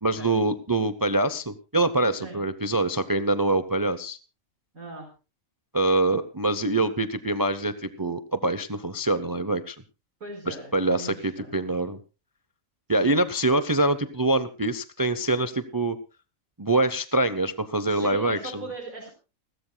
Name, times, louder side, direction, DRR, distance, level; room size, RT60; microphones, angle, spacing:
voice 1, 0.0-4.2 5.7-9.8 10.5-12.0 12.9-16.0 16.6-18.7, right 2 dB, 25° right, 12 dB, 0.5 m, -25 dB
voice 2, 4.7-5.1 10.2-11.6 13.0-13.3 17.8-19.1, right 2 dB, 70° right, -3 dB, 5.1 m, -40 dB
29.5 x 13.0 x 2.2 m, 0.32 s
omnidirectional pair, 1.5 m